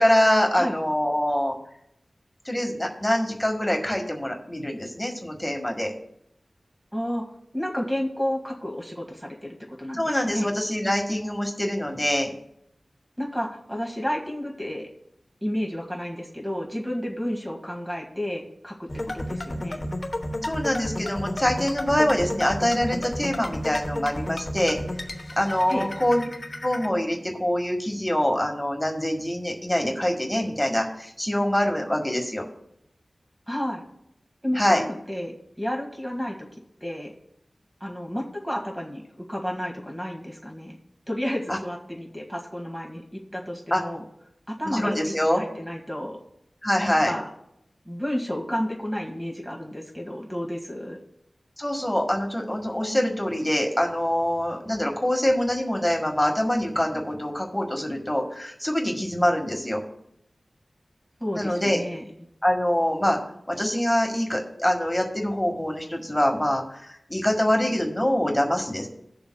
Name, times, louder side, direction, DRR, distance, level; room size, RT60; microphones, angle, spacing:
voice 1, 0.0-1.6 2.5-5.9 9.9-12.3 20.4-24.8 25.4-26.3 26.6-32.5 34.6-34.8 41.5-41.6 43.7-43.8 44.7-45.4 46.6-47.1 51.6-59.8 61.4-61.8 62.4-63.2 63.5-68.9, left 1 dB, 10° left, 1 dB, 1.8 m, -24 dB
voice 2, 6.9-7.3 7.5-10.5 13.2-14.9 15.4-19.9 25.7-25.9 33.5-33.8 34.4-36.5 36.8-37.1 37.8-40.8 41.1-44.0 44.5-46.2 46.8-47.3 47.9-51.0 61.2-62.0, equal, 10° right, 0 dB, 2.0 m, -31 dB
sound 1, 18.9-26.9, left 1 dB, 45° left, 1.1 m, -32 dB
19.0 x 6.9 x 2.3 m, 0.76 s
wide cardioid pair, 55°, 0 cm